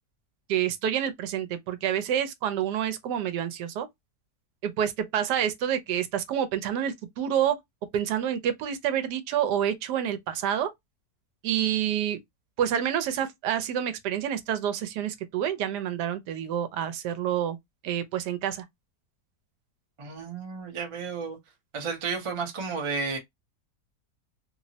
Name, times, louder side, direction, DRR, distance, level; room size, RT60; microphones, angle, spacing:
voice 1, 0.5-3.9 4.6-7.6 7.9-10.7 11.4-12.2 12.6-17.6 17.8-18.6, right 9 dB, 80° right, 1.2 m, -28 dB
voice 2, 20.0-21.4 21.7-23.2, right 5 dB, 50° right, 0.3 m, -32 dB
3.2 x 2.0 x 2.6 m
omnidirectional pair, 1.8 m